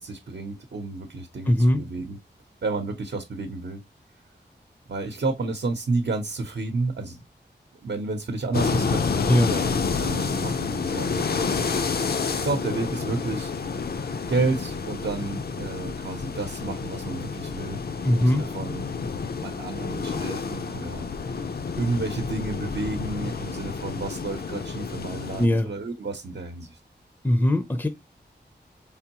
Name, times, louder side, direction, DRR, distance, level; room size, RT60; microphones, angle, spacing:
voice 1, 0.0-2.2 2.6-3.8 4.9-7.2 7.8-11.4 12.3-13.5 14.3-17.8 18.1-18.8 19.4-26.8, right 3 dB, 70° right, 0.8 m, -31 dB
voice 2, 1.5-1.8 9.3-9.5 18.0-18.4 25.4-25.7 27.2-27.9, left 1 dB, 10° left, 0.5 m, -20 dB
sound 1, 8.5-25.5, left 5 dB, 60° left, 0.5 m, -29 dB
4.4 x 3.5 x 2.9 m
wide cardioid pair, 85°, 18 cm